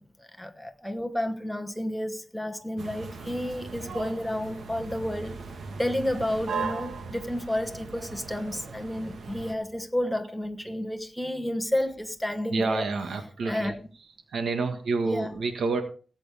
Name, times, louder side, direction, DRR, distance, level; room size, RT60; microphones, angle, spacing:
voice 1, 0.0-5.3 5.8-12.8 13.5-13.7 15.0-15.3, left 1 dB, ahead, 1.2 m, -31 dB
sound 1, 2.8-9.5, right 5 dB, 70° right, 1.4 m, -38 dB
voice 2, 12.5-13.7 14.3-15.8, right 3 dB, 90° right, 1.6 m, -28 dB
18.0 x 8.3 x 3.5 m
wide cardioid pair, 175°, 0 cm